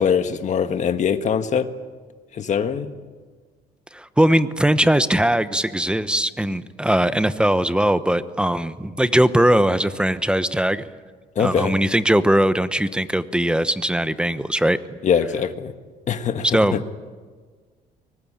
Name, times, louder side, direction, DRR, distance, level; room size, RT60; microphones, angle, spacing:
voice 1, 0.0-1.7 2.3-2.9 11.3-11.7 15.0-15.7 16.1-16.4 16.7-16.8, left 7 dB, 45° left, 8 dB, 1.6 m, -22 dB
voice 2, 3.9-10.8 11.4-15.0 16.4-16.8, right 1 dB, 5° right, 12 dB, 1.0 m, -20 dB
24.0 x 20.0 x 8.8 m, 1.5 s
cardioid pair, 110°, 17 cm